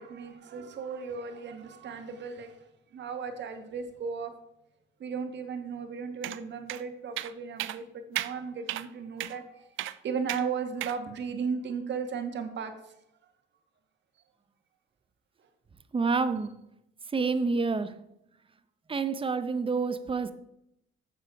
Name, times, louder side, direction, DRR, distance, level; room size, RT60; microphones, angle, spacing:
voice 1, 0.0-4.3 5.0-12.9, right 6 dB, 65° right, 6 dB, 1.4 m, -36 dB
sound 1, 6.2-6.4 6.7-6.8 7.2-7.3 7.6-7.8 8.2-8.3 8.7-8.9 9.2-9.3 9.8-10.0 10.3-10.4 10.8-11.0, right 15 dB, 85° right, 0.4 m, -33 dB
voice 2, 15.9-16.6 17.1-18.0 18.9-20.3, right 4 dB, 25° right, 12 dB, 0.7 m, -28 dB
7.5 x 6.9 x 4.8 m, 0.82 s
cardioid pair, 90°, 20 cm